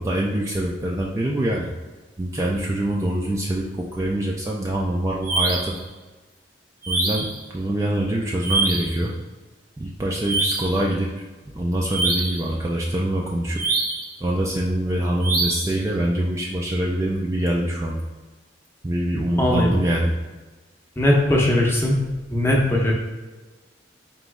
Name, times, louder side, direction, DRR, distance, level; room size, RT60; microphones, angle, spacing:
voice 1, 0.0-1.7 2.2-5.8 6.9-9.1 9.8-11.2 11.5-13.6 14.2-18.0 18.8-20.1, right 1 dB, 15° right, -2 dB, 0.3 m, -24 dB
sound 1, 5.2-5.8 6.8-7.4 8.4-9.0 10.2-10.8 11.9-12.5 13.6-14.1 15.2-15.8, right 3 dB, 55° right, 0.7 m, -24 dB
voice 2, 19.4-19.7 21.0-22.0 22.3-22.9, left 1 dB, 15° left, -2 dB, 0.7 m, -19 dB
4.1 x 3.0 x 3.5 m, 1.3 s
head